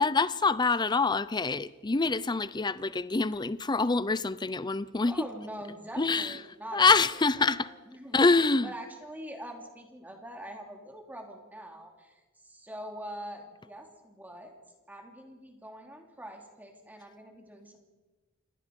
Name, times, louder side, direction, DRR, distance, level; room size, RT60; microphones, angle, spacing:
voice 1, 0.0-5.3 6.0-6.4 6.7-7.7 8.1-8.7, left 4 dB, 20° left, 0.6 m, -25 dB
voice 2, 5.0-7.1 7.4-8.2 8.6-14.5 14.9-17.8, right 1 dB, 10° right, 2.9 m, -44 dB
27.5 x 20.0 x 5.3 m
head